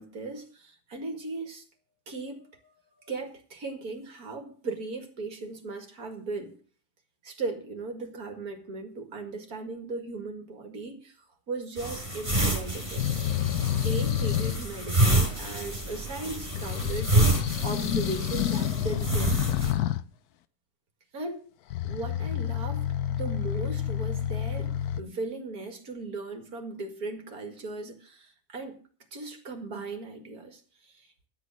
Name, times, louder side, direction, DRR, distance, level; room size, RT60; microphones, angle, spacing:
voice 1, 0.0-1.6 2.1-6.5 7.2-11.2 11.5-17.4 17.6-19.6 21.1-21.4 21.8-28.8 29.1-31.3, right 3 dB, 65° right, 5 dB, 2.6 m, -37 dB
sound 1, 11.8-19.7, right 1 dB, 30° right, 5.1 m, -28 dB
sound 2, 13.0-14.6 16.5-20.0 21.7-25.0, left 11 dB, 75° left, 1.2 m, -29 dB
12.0 x 8.2 x 6.3 m, 0.43 s
omnidirectional pair, 1.7 m